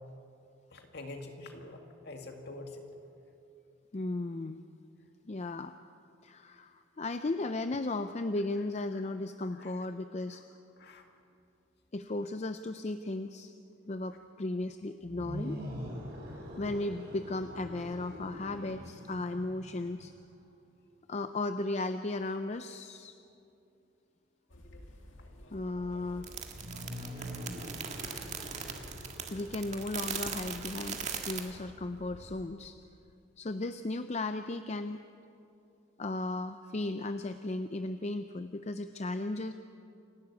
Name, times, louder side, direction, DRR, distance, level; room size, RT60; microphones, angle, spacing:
voice 1, 0.7-2.8 8.9-9.0 9.5-9.7 10.3-10.5 10.8-11.0 26.9-28.6, left 2 dB, 55° left, 4 dB, 2.1 m, -48 dB
voice 2, 3.9-4.6 5.3-5.7 6.2-10.4 11.9-13.5 13.8-15.6 16.6-20.1 21.1-23.1 25.5-26.3 29.3-32.8 33.4-35.0 36.0-39.5, left 2 dB, 35° left, 9 dB, 0.5 m, -35 dB
sound 1, 15.0-20.2 26.4-32.1, equal, 55° right, 7.3 m, -44 dB
sound 2, 24.5-32.4, equal, 70° left, 2.2 m, -53 dB
sound 3, 26.2-31.4, right 7 dB, 35° right, 1.7 m, -39 dB
28.0 x 12.0 x 8.3 m, 2.6 s
head